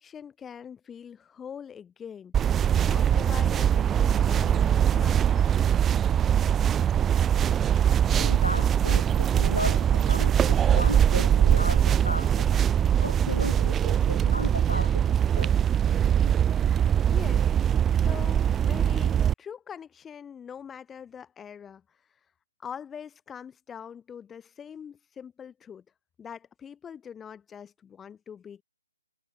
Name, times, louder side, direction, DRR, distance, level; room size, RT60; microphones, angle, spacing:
voice 1, 0.0-5.7 17.1-17.5 17.9-22.0 22.6-25.8 26.2-28.6, left 7 dB, 10° left, 3.9 m, -43 dB
sound 1, 2.3-19.3, right 9 dB, 10° right, 1.4 m, -22 dB
voice 2, 8.2-12.5 13.0-15.1 15.4-15.6 16.3-16.4, left 1 dB, 90° left, 5.3 m, -35 dB
figure-of-eight pair, 140°, 0 cm